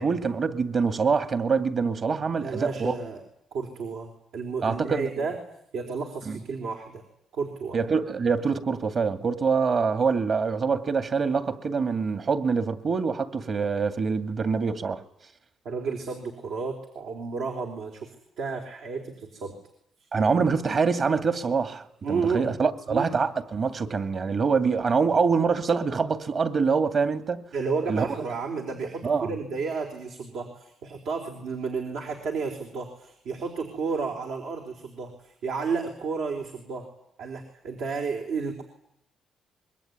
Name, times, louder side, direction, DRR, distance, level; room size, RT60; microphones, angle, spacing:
voice 1, 0.0-2.9 4.6-5.3 6.3-6.4 7.7-15.0 20.1-27.5 27.9-28.1 29.0-29.3, right 5 dB, 45° right, 2.5 m, -25 dB
voice 2, 2.4-3.2 3.5-5.4 5.7-7.0 7.3-7.8 15.6-18.1 18.4-19.5 20.0-20.1 22.0-22.5 22.9-23.1 27.5-36.9 37.2-38.6, right 5 dB, 80° right, 4.1 m, -32 dB
26.5 x 22.5 x 9.7 m
cardioid pair, 90°, 0 cm